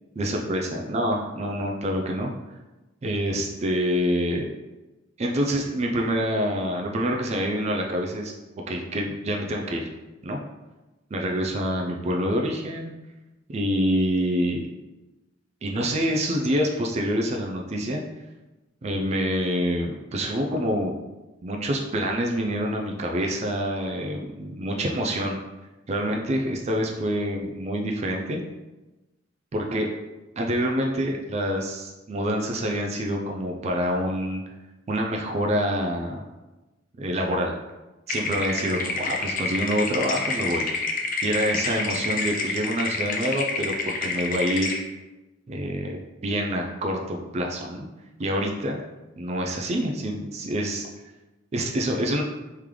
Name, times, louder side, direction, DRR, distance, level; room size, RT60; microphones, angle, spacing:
voice 1, 0.2-2.3 3.0-4.5 5.2-8.3 8.7-9.9 10.2-10.4 11.1-12.9 13.5-14.7 15.6-18.0 18.8-21.0 21.4-25.4 25.9-28.4 29.5-29.9 30.4-34.4 34.9-36.2 37.0-37.5 38.1-40.6 41.2-44.7 45.5-47.9 48.2-48.8 49.2-50.9 51.5-52.2, equal, 35° right, 1 dB, 0.4 m, -26 dB
sound 1, 38.1-44.8, left 3 dB, 45° left, 0.5 m, -28 dB
3.7 x 3.3 x 3.1 m, 1.1 s
head